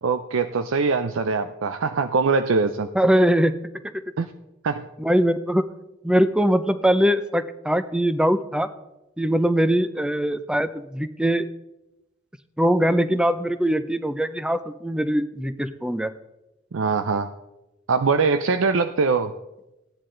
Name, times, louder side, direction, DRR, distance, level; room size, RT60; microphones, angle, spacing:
voice 1, 0.0-2.9 4.2-4.3 4.6-4.9 16.7-17.3 17.9-19.3, right 4 dB, 75° right, 9 dB, 0.5 m, -22 dB
voice 2, 2.9-3.6 5.0-5.7 6.0-8.7 9.2-11.5 12.6-16.1, equal, 5° right, 11 dB, 0.5 m, -21 dB
15.5 x 10.0 x 3.8 m, 0.96 s
head